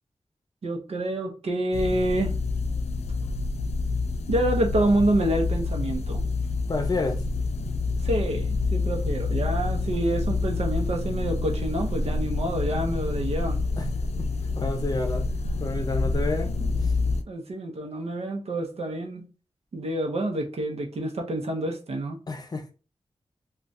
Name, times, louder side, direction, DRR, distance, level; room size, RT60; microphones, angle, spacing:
voice 1, 0.6-2.3 4.3-6.2 8.0-13.6 17.3-19.3 19.7-22.2, right 1 dB, 75° right, 0.8 m, -27 dB
sound 1, 1.7-17.2, left 3 dB, 85° left, 0.4 m, -27 dB
voice 2, 6.7-7.2 13.8-13.9 14.5-15.3 15.6-16.5 16.8-16.9 22.3-22.7, left 3 dB, 40° left, 0.6 m, -29 dB
2.4 x 2.3 x 4.0 m
wide cardioid pair, 105°, 11 cm